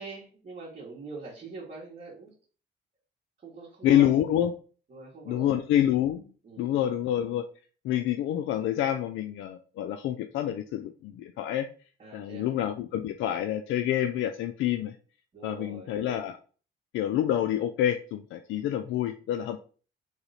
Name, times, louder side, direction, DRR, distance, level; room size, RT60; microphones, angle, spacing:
voice 1, 0.0-2.3 3.4-4.1 4.9-5.5 6.4-6.8 12.0-12.5 15.3-16.0, right 3 dB, 40° right, -4 dB, 1.4 m, -43 dB
voice 2, 3.8-4.5 5.3-6.2 6.6-7.4 7.8-11.7 12.1-15.0 15.4-16.4 16.9-19.6, left 11 dB, 80° left, 6 dB, 0.4 m, -27 dB
3.2 x 2.8 x 4.0 m, 0.39 s
cardioid pair, 90°, 20 cm